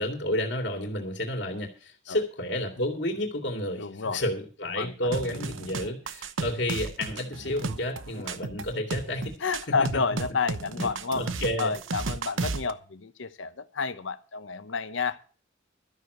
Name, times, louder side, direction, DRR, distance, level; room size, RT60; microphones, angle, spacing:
voice 1, 0.0-9.4 9.8-10.0 10.8-10.9 11.1-11.7, left 1 dB, 60° left, 2.4 m, -31 dB
voice 2, 3.8-4.2 4.8-5.4 9.4-11.2 11.6-15.2, left 4 dB, 75° left, 0.8 m, -30 dB
sound 1, 5.1-12.7, right 3 dB, 85° right, 0.9 m, -34 dB
13.0 x 6.6 x 7.8 m
head